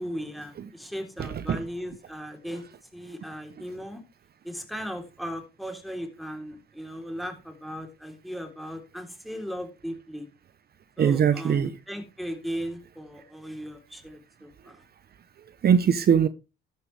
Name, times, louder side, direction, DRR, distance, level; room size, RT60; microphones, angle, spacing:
voice 1, 0.0-2.6 2.9-4.0 4.4-10.3 11.0-14.8, equal, ahead, 3.6 m, -37 dB
voice 2, 1.2-1.6 11.0-11.7 15.6-16.3, right 8 dB, 50° right, 0.9 m, -21 dB
12.5 x 9.7 x 3.4 m
cardioid pair, 90°, 20 cm